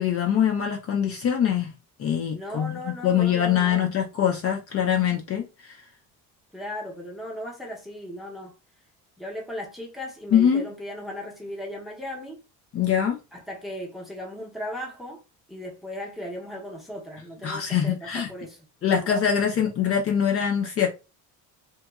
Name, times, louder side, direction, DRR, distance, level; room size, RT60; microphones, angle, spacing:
voice 1, 0.0-1.7 2.0-5.8 10.3-10.6 12.7-13.2 17.4-18.3 18.8-20.9, left 8 dB, 40° left, 0.5 m, -23 dB
voice 2, 2.3-3.9 6.5-8.5 9.2-12.4 13.3-15.2 15.5-19.1, left 1 dB, ahead, 0.6 m, -37 dB
2.9 x 2.2 x 2.3 m
cardioid pair, 140°, 36 cm